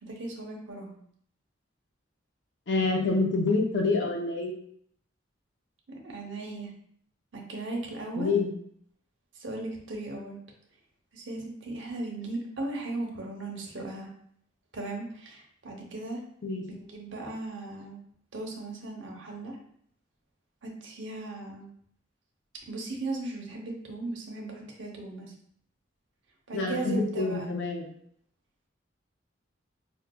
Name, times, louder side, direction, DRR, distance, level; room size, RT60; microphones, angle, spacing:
voice 1, 0.0-0.9 5.9-6.7 7.3-8.4 9.4-10.4 11.1-14.1 14.7-16.2 16.7-18.0 18.3-19.6 20.6-21.7 22.6-25.3 26.5-27.5, right 2 dB, 70° right, -1 dB, 0.8 m, -37 dB
voice 2, 2.7-4.5 8.2-8.5 16.4-16.6 26.5-27.9, left 3 dB, 65° left, 0 dB, 0.6 m, -27 dB
5.1 x 2.3 x 2.2 m, 0.66 s
head